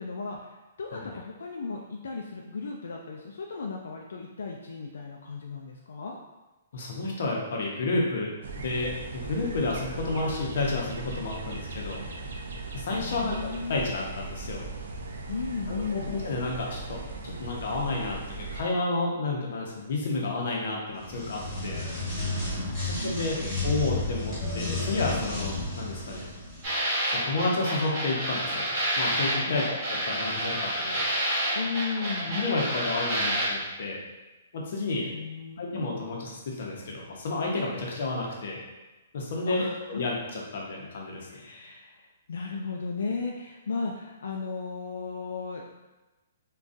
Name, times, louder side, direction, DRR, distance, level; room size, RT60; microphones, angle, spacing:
voice 1, 0.0-6.2 13.0-13.8 15.3-16.1 22.6-23.6 29.4-29.7 31.5-32.3 35.1-35.6 39.4-40.0 41.3-45.6, left 4 dB, 80° left, 0 dB, 0.3 m, -35 dB
voice 2, 6.7-12.0 12.7-14.6 15.7-21.8 23.0-23.4 23.6-26.3 27.1-28.7 29.0-31.1 32.3-34.0 34.5-35.1 35.6-38.6 39.1-41.4, left 3 dB, 50° left, -2 dB, 0.7 m, -31 dB
sound 1, 8.4-18.6, right 3 dB, 65° right, 0.4 m, -38 dB
sound 2, 21.0-26.7, left 2 dB, 10° left, 1.2 m, -32 dB
sound 3, 26.6-33.5, right 1 dB, 15° right, 1.1 m, -29 dB
3.6 x 2.3 x 2.6 m, 1.1 s
hypercardioid pair, 175°, 0 cm